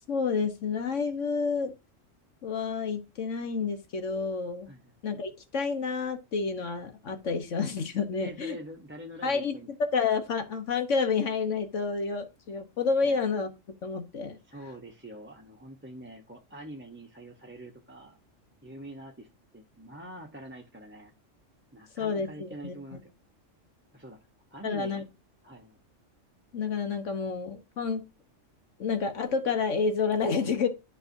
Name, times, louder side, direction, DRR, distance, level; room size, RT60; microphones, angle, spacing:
voice 1, 0.1-1.7 2.4-4.7 5.0-8.6 9.2-9.6 9.9-13.5 13.8-14.4 22.0-23.0 24.6-25.0 26.5-28.0 28.8-30.7, left 5 dB, 70° left, 6 dB, 1.4 m, -29 dB
voice 2, 8.2-9.7 13.0-13.2 14.5-18.2 18.6-19.3 19.5-21.1 21.7-23.1 23.9-24.2 24.5-25.0 25.4-25.8, right 1 dB, 10° right, 0 dB, 0.8 m, -45 dB
11.0 x 4.8 x 2.6 m, 0.27 s
omnidirectional pair, 1.3 m